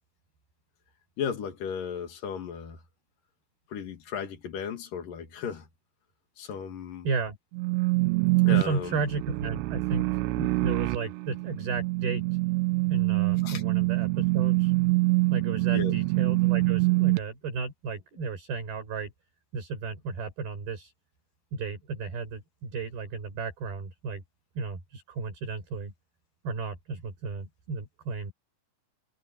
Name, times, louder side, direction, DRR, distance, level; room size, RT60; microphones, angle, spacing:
voice 1, 1.2-2.8 3.7-5.7 6.4-7.1 8.4-9.0 13.4-13.6 15.7-15.9, left 7 dB, 55° left, 3.6 m, -35 dB
voice 2, 7.0-7.4 8.5-12.2 12.9-14.7 15.3-19.1 19.5-20.9 21.5-24.2 24.6-25.9 26.4-28.3, right 4 dB, 60° right, 7.5 m, -33 dB
sound 1, 7.5-17.2, right 23 dB, 85° right, 2.9 m, -25 dB
omnidirectional pair, 4.9 m